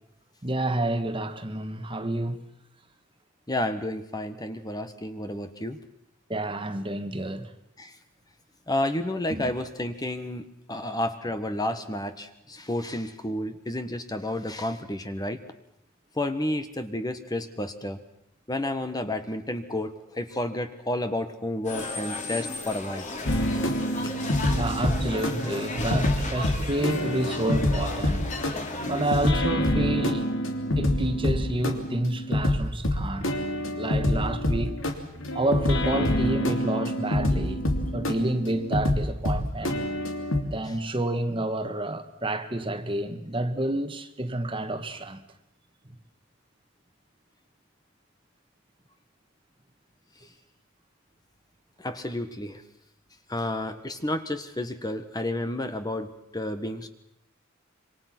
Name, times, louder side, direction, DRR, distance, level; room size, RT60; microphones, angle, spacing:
voice 1, 0.4-2.4 6.3-7.4 9.3-9.5 10.9-11.0 24.5-28.3 28.8-30.3 30.8-33.3 33.8-34.7 35.3-39.8 40.5-45.2, right 1 dB, 25° right, 1.6 m, -29 dB
voice 2, 3.5-5.8 7.8-7.9 8.7-15.4 16.1-18.0 18.5-23.1 23.5-23.6 40.7-40.8 51.8-52.6 53.3-56.9, left 1 dB, 20° left, 1.4 m, -31 dB
sound 1, 21.6-29.3, left 2 dB, 35° left, 3.3 m, -35 dB
sound 2, 23.3-40.4, left 1 dB, 75° left, 3.1 m, -27 dB
27.0 x 25.0 x 6.1 m
head